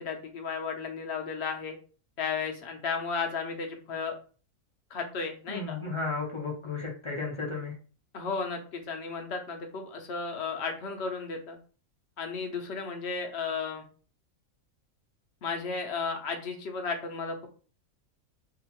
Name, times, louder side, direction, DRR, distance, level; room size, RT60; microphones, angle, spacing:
voice 1, 0.0-1.8 2.2-4.2 4.9-5.8 8.1-11.6 12.2-13.8 15.4-17.5, left 5 dB, 60° left, 4 dB, 0.8 m, -34 dB
voice 2, 5.5-7.7, left 3 dB, 40° left, -2 dB, 0.4 m, -34 dB
2.8 x 2.4 x 2.9 m, 0.38 s
omnidirectional pair, 1.4 m